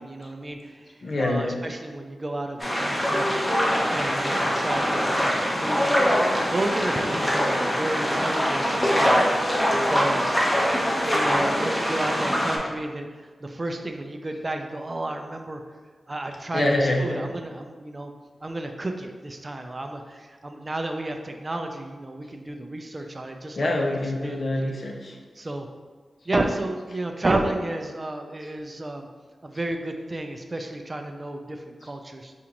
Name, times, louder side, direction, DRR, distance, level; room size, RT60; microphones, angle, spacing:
voice 1, 0.0-0.9 1.2-3.3 3.9-6.2 6.5-9.1 9.9-10.4 11.1-15.6 16.1-18.1 18.4-23.7 24.2-24.4 25.4-25.7 26.3-29.1 29.4-32.3, right 2 dB, 40° right, 5 dB, 0.4 m, -31 dB
voice 2, 1.0-1.6 6.9-7.1 16.5-17.3 23.6-25.2 31.8-31.9, left 1 dB, 60° left, 1 dB, 0.6 m, -25 dB
sound 1, 2.6-12.6, equal, 20° left, 0.9 m, -23 dB
5.0 x 2.4 x 2.9 m, 1.4 s
cardioid pair, 40°, 0 cm